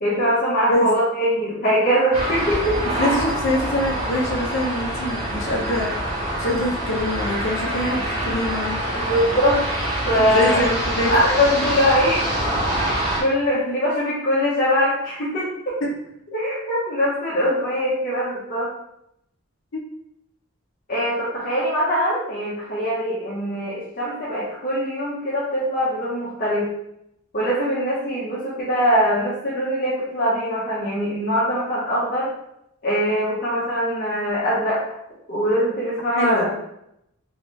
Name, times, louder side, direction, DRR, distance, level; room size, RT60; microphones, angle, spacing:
voice 1, 0.0-2.8 8.9-9.6 10.1-10.6 11.0-12.4 12.8-15.7 16.3-18.7 20.9-26.7 27.3-32.3 32.8-34.8 35.3-36.5, equal, 40° left, -9 dB, 0.9 m, -22 dB
sound 1, 2.1-13.2, right 1 dB, 30° right, 1.0 m, -25 dB
voice 2, 3.0-8.8 10.2-11.2 19.7-19.8 36.1-36.5, left 1 dB, 65° left, -1 dB, 0.7 m, -24 dB
3.2 x 3.1 x 3.1 m, 0.80 s
head